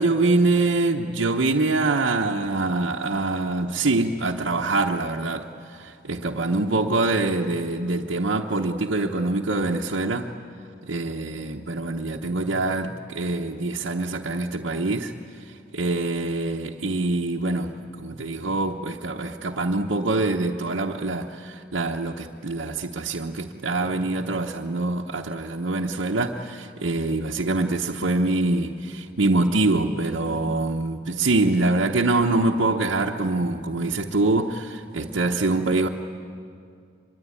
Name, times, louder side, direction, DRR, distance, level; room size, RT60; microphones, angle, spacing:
voice 1, 0.0-5.5 5.8-10.3 10.9-15.1 15.7-35.9, right 2 dB, 85° right, -2 dB, 1.0 m, -24 dB
24.5 x 22.0 x 9.7 m, 2.4 s
head